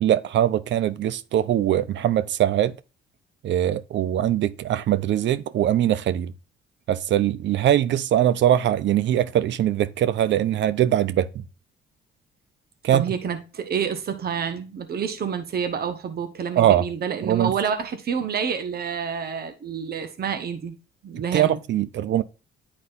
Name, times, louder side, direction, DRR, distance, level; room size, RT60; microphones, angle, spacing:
voice 1, 0.0-2.8 3.4-6.3 6.9-11.4 12.8-13.1 16.6-16.9 17.2-17.5 21.3-22.2, right 11 dB, 65° right, 0.6 m, -22 dB
voice 2, 12.9-20.7 21.0-21.6, right 7 dB, 50° right, 1.2 m, -28 dB
9.6 x 4.2 x 2.6 m
cardioid pair, 90°, 20 cm